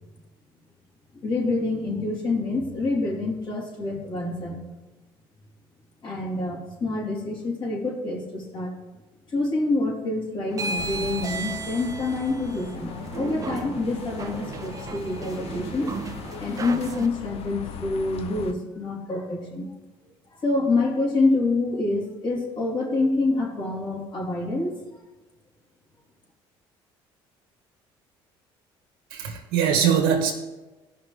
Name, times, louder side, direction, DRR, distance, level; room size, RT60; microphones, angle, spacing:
voice 1, 1.2-4.6 6.0-8.7 9.3-15.9 16.4-19.7 20.3-24.8, left 2 dB, 45° left, -3 dB, 3.2 m, -27 dB
sound 1, 10.5-17.1, right 4 dB, 30° right, 0.9 m, -35 dB
sound 2, 10.8-18.5, left 6 dB, 60° left, 0.8 m, -39 dB
voice 2, 29.1-30.3, right 7 dB, 85° right, 1 dB, 1.2 m, -22 dB
16.0 x 5.8 x 3.3 m, 1.1 s
supercardioid pair, 80°, 11 cm